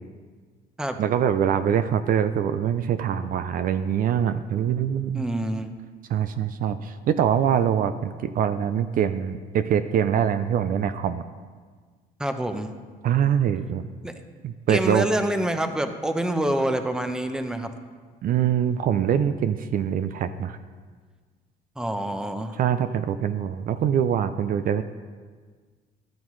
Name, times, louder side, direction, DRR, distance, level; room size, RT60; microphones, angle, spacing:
voice 1, 1.0-5.2 6.1-11.2 13.0-13.8 14.4-15.1 18.2-20.6 22.6-24.8, right 9 dB, 55° right, 10 dB, 0.5 m, -24 dB
voice 2, 5.1-5.7 12.2-12.7 14.0-14.1 14.7-17.7 21.8-22.6, right 1 dB, 5° right, 7 dB, 0.7 m, -26 dB
13.5 x 10.5 x 3.2 m, 1.5 s
cardioid pair, 110°, 17 cm